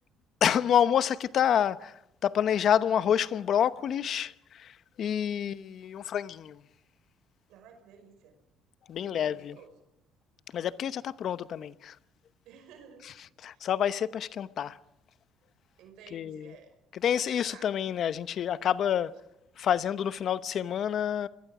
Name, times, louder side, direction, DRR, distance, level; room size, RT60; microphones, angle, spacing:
voice 1, 0.4-1.9 2.2-6.6 8.9-9.6 10.5-11.9 13.4-14.8 16.1-16.5 17.0-19.1 19.6-21.3, left 9 dB, 55° left, 0.9 m, -28 dB
voice 2, 7.5-8.4 8.9-9.8 12.5-13.1 13.4-13.7 15.8-16.8 17.0-17.7, right 6 dB, 80° right, 5.4 m, -53 dB
28.5 x 22.0 x 5.0 m
cardioid pair, 100°, 0 cm